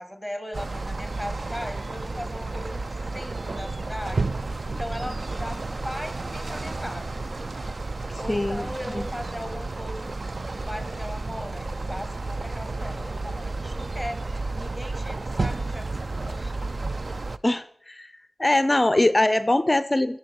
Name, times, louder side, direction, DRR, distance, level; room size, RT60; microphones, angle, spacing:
voice 1, 0.0-4.3 4.7-7.1 8.2-10.1 10.5-16.5, equal, ahead, 10 dB, 1.5 m, -38 dB
sound 1, 0.5-17.4, right 3 dB, 50° right, 0.4 m, -31 dB
voice 2, 8.3-8.6 8.9-9.1 17.4-18.1 18.4-20.2, left 1 dB, 25° left, 14 dB, 0.5 m, -22 dB
16.5 x 7.1 x 7.7 m, 0.66 s
wide cardioid pair, 85°, 0 cm